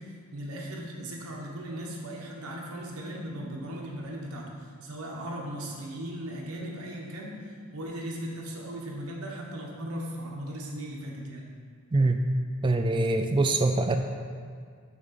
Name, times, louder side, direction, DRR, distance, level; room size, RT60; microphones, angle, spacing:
voice 1, 0.3-4.5 4.8-7.4 7.7-11.5, right 1 dB, 80° right, -2 dB, 1.1 m, -37 dB
voice 2, 11.9-12.2 12.6-14.0, right 2 dB, 20° right, 5 dB, 0.3 m, -24 dB
6.3 x 3.7 x 5.8 m, 2.1 s
head